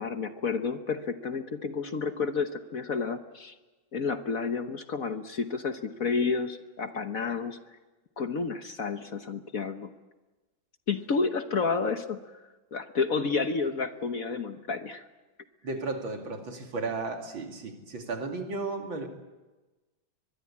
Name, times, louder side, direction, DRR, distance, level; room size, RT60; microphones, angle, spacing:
voice 1, 0.0-3.5 3.9-7.6 8.2-9.9 10.9-12.2 12.7-15.0, left 4 dB, 50° left, 8 dB, 1.4 m, -30 dB
voice 2, 15.6-19.1, right 3 dB, 75° right, 3 dB, 3.4 m, -34 dB
23.5 x 22.0 x 8.6 m, 1.2 s
omnidirectional pair, 2.2 m